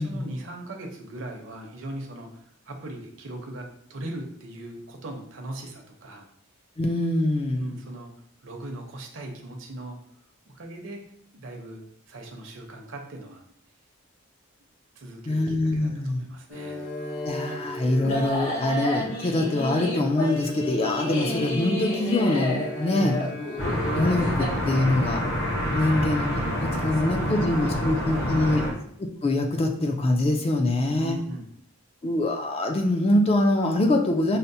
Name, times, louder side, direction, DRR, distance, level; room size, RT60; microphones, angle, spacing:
voice 1, 0.0-6.3 7.5-8.1 8.4-10.0 10.5-11.0 11.3-13.4 15.0-16.8 22.9-23.4 25.8-26.0 26.8-28.7 30.8-31.5, right 1 dB, 60° right, 2 dB, 0.6 m, -39 dB
voice 2, 6.8-7.7 15.3-16.2 17.2-23.2 23.9-25.2 25.7-28.7 29.2-31.2 32.0-34.4, left 1 dB, 25° left, 3 dB, 0.3 m, -24 dB
sound 1, 16.5-24.5, left 1 dB, 80° left, 0.9 m, -31 dB
sound 2, 23.6-28.7, equal, 55° left, 0.8 m, -27 dB
5.5 x 2.0 x 2.6 m, 0.67 s
head